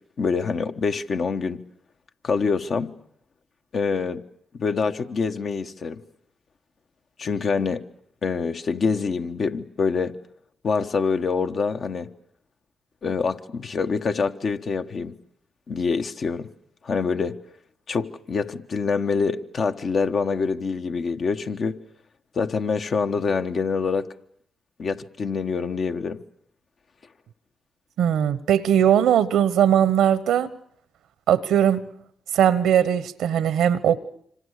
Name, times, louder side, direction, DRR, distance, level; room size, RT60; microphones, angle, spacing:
voice 1, 0.2-1.6 2.2-2.9 3.7-4.2 4.6-6.0 7.2-7.8 8.2-10.1 10.6-12.1 13.0-15.1 15.7-16.5 16.8-17.4 17.9-21.8 22.3-24.1 24.8-26.2, left 5 dB, 55° left, 1.3 m, -25 dB
voice 2, 28.0-30.5 31.3-31.8 32.3-34.0, right 9 dB, 80° right, 1.1 m, -19 dB
26.5 x 26.0 x 6.7 m
hypercardioid pair, 45°, 0 cm